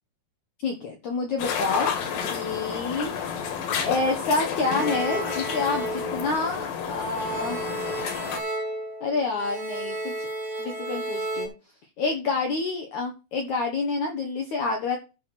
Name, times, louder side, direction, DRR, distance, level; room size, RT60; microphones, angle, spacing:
voice 1, 0.6-1.9 2.3-3.2 3.8-7.6 9.0-10.3 10.6-11.5 12.0-15.0, left 3 dB, 75° left, 4 dB, 1.7 m, -28 dB
sound 1, 1.4-8.4, left 7 dB, 60° left, 2.8 m, -30 dB
sound 2, 4.6-6.8 7.1-11.5, right 2 dB, 25° right, 1.8 m, -33 dB
12.0 x 6.2 x 4.2 m, 0.29 s
omnidirectional pair, 5.3 m